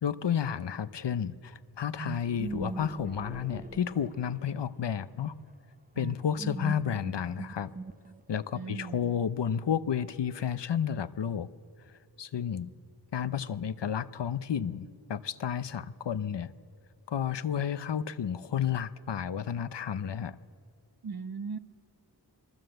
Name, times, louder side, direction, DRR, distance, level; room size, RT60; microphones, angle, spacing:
voice 1, 0.0-5.3 6.0-7.7 8.3-11.5 12.2-12.7 13.1-16.5 17.1-20.4, left 8 dB, 85° left, 15 dB, 0.8 m, -31 dB
sound 1, 2.0-4.5 6.0-8.4, right 3 dB, 20° right, 0.9 m, -40 dB
voice 2, 8.5-9.1 21.0-21.6, right 5 dB, 60° right, 10 dB, 1.1 m, -38 dB
27.5 x 21.5 x 7.9 m, 2.1 s
wide cardioid pair, 65°, 41 cm